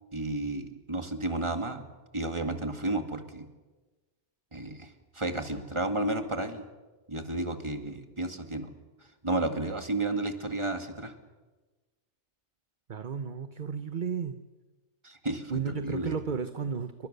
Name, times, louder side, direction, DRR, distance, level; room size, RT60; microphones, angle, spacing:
voice 1, 0.1-1.9 2.1-3.5 4.5-6.7 7.1-8.7 9.2-11.2 15.0-16.1, right 2 dB, 25° right, 6 dB, 2.2 m, -32 dB
voice 2, 12.9-14.4 15.5-17.1, right 6 dB, 45° right, 10 dB, 1.1 m, -33 dB
28.0 x 24.0 x 6.8 m, 1.2 s
omnidirectional pair, 1.2 m